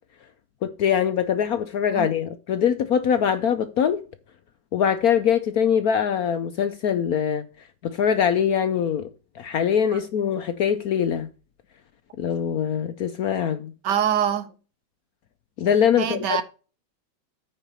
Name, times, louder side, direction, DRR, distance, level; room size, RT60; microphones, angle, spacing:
voice 1, 0.6-4.0 4.7-7.5 7.8-9.1 9.4-11.3 12.2-13.7 15.6-16.4, left 8 dB, 65° left, 0.9 m, -23 dB
voice 2, 13.8-14.5 16.0-16.4, right 9 dB, 70° right, 1.4 m, -24 dB
9.0 x 4.4 x 6.6 m
omnidirectional pair, 2.1 m